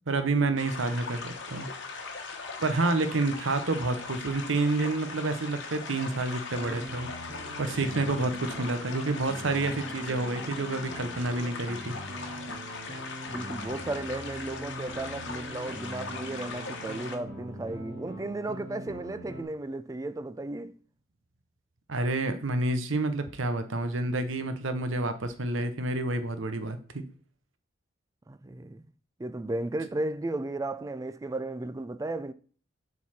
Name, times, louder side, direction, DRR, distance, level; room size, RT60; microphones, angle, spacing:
voice 1, 0.1-1.7 2.6-7.1 7.6-11.9 21.9-27.0, right 2 dB, 80° right, 0.8 m, -29 dB
sound 1, 0.6-17.2, left 4 dB, 65° left, 1.2 m, -40 dB
sound 2, 6.5-19.4, right 1 dB, 45° right, 1.8 m, -42 dB
voice 2, 13.2-20.8 28.3-28.9 29.2-32.3, right 2 dB, 15° right, 0.3 m, -34 dB
7.3 x 4.1 x 4.2 m
head